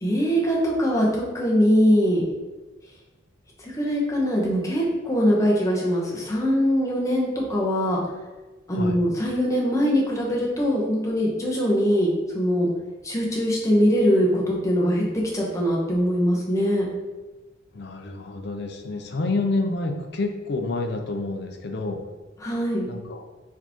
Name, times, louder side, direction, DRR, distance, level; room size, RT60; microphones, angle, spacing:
voice 1, 0.0-2.2 3.6-8.0 8.7-12.7 13.0-16.9 22.4-22.9, equal, 15° left, -4 dB, 0.9 m, -22 dB
voice 2, 8.7-9.0 17.7-22.0 22.9-23.2, left 2 dB, 55° left, 4 dB, 0.5 m, -28 dB
4.6 x 3.5 x 3.0 m, 1.2 s
head